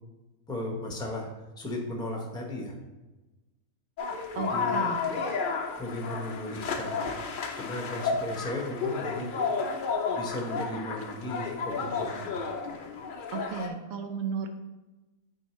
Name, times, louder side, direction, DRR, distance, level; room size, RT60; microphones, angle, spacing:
voice 1, 0.5-1.3 1.6-2.7 4.3-4.8 5.8-7.2 7.6-9.3 10.1-12.3, left 1 dB, 5° left, 0 dB, 0.6 m, -36 dB
sound 1, 4.0-13.7, left 5 dB, 55° left, 0.5 m, -32 dB
voice 2, 4.4-5.0 13.3-14.5, right 6 dB, 70° right, 6 dB, 1.1 m, -34 dB
8.7 x 3.9 x 3.1 m, 1.1 s
omnidirectional pair, 1.5 m